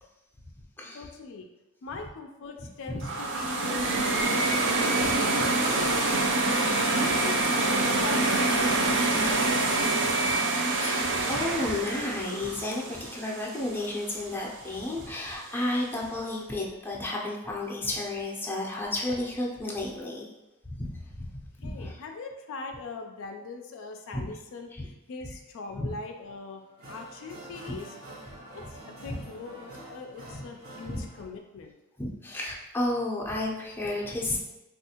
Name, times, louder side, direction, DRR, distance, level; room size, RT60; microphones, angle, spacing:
voice 1, 0.9-1.5 1.8-6.3 6.9-10.2 21.6-26.6 26.9-27.9 28.5-31.7, left 4 dB, 65° left, 3 dB, 0.4 m, -41 dB
sound 1, 3.0-14.0, right 2 dB, 60° right, 0.5 m, -26 dB
voice 2, 4.9-5.5 10.8-20.3 20.6-22.0 24.1-24.2 24.7-24.9 25.7-25.9 27.7-27.8 29.1-29.2 30.9-31.0 32.0-34.4, left 1 dB, 10° left, -3 dB, 0.5 m, -32 dB
sound 2, 25.9-26.0 26.5-31.3, right 1 dB, 75° right, 0.9 m, -46 dB
3.5 x 2.4 x 2.8 m, 1.0 s
head